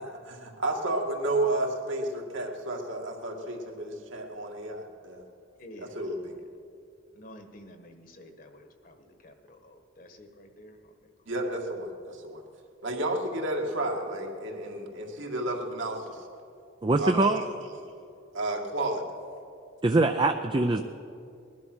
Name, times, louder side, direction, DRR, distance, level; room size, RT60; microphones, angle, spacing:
voice 1, 0.0-5.2 5.8-6.3 11.3-12.4 12.8-16.3 17.0-17.5 18.3-19.0, right 1 dB, 70° right, 0 dB, 2.1 m, -32 dB
voice 2, 5.6-6.4 7.1-10.8, equal, 45° left, 6 dB, 1.3 m, -50 dB
voice 3, 16.8-17.4 19.8-20.8, right 2 dB, 25° right, 6 dB, 0.4 m, -23 dB
20.0 x 11.5 x 6.2 m, 2.5 s
head